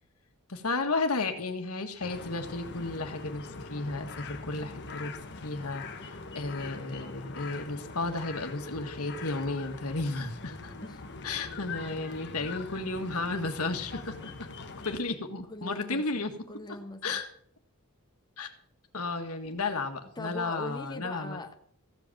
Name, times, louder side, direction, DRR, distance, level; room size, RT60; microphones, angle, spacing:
voice 1, 0.5-5.2 5.4-10.7 11.2-14.3 14.8-16.3 17.0-17.3 18.4-18.5 18.9-21.4, left 3 dB, 75° left, 5 dB, 1.7 m, -33 dB
sound 1, 2.0-15.0, left 3 dB, 55° left, 1.3 m, -43 dB
voice 2, 10.7-11.0 15.4-17.2 20.2-21.5, left 2 dB, 20° left, 4 dB, 1.1 m, -41 dB
15.0 x 8.0 x 7.3 m, 0.63 s
head